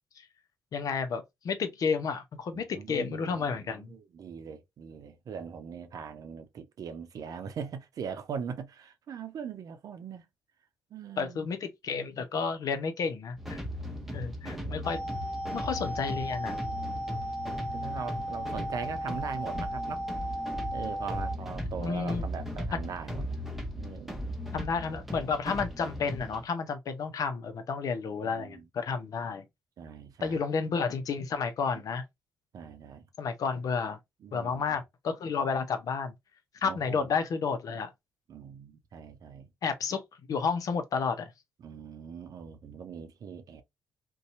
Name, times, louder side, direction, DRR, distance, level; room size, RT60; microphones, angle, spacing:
voice 1, 0.7-3.9 11.2-13.6 14.1-15.0 15.5-16.6 21.8-22.2 24.5-29.4 30.2-32.0 33.2-34.0 34.3-36.1 36.6-37.9 39.6-40.0 40.3-41.3, left 5 dB, 60° left, 0.6 m, -31 dB
voice 2, 2.5-10.3 10.9-11.5 13.8-14.9 16.7-17.0 17.6-20.0 20.7-23.4 23.8-24.4 28.2-28.7 29.8-30.4 32.5-33.1 34.2-34.8 36.6-37.0 38.3-39.5 41.6-43.6, right 6 dB, 60° right, 0.6 m, -41 dB
sound 1, 13.4-26.4, equal, 5° right, 0.9 m, -38 dB
sound 2, 14.8-21.4, right 1 dB, 20° left, 1.0 m, -35 dB
2.7 x 2.2 x 2.6 m
hypercardioid pair, 45°, 7 cm